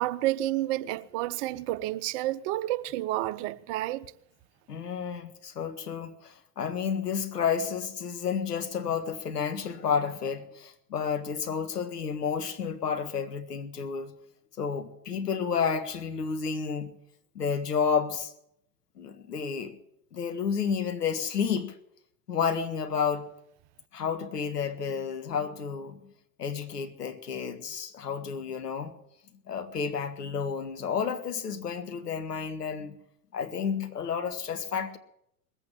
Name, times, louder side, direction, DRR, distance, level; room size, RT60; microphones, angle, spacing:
voice 1, 0.0-4.1, right 16 dB, 50° right, 0.8 m, -30 dB
voice 2, 4.7-14.1 14.6-16.9 17.4-18.3 19.0-19.8 20.1-21.7 22.3-23.3 23.9-26.0 26.4-29.0 29.5-33.0 33.3-35.0, left 6 dB, 80° left, 1.7 m, -31 dB
20.5 x 8.5 x 7.5 m
hypercardioid pair, 90°, 46 cm